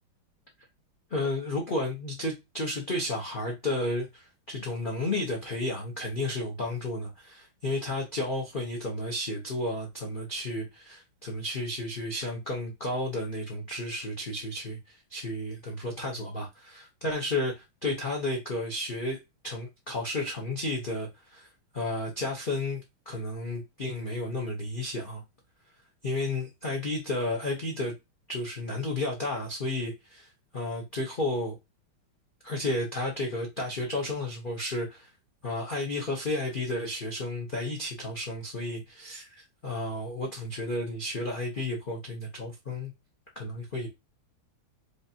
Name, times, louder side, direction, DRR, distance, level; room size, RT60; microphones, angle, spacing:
voice 1, 1.1-17.5 17.8-19.2 19.4-21.5 21.7-25.2 26.0-27.9 28.3-31.6 32.4-35.1 35.4-42.9 43.4-43.9, left 1 dB, 65° left, 0.5 m, -32 dB
4.9 x 2.6 x 2.7 m
omnidirectional pair, 2.3 m